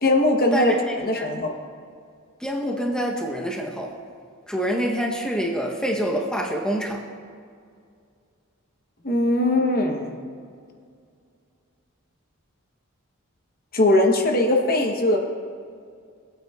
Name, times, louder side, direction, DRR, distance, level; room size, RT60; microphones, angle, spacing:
voice 1, 0.0-1.5 9.0-10.1 13.7-15.2, left 1 dB, 45° left, 3 dB, 0.9 m, -20 dB
voice 2, 0.5-1.3 2.4-3.9 4.5-7.0, equal, 5° left, -1 dB, 0.7 m, -26 dB
19.5 x 8.9 x 2.3 m, 2.2 s
head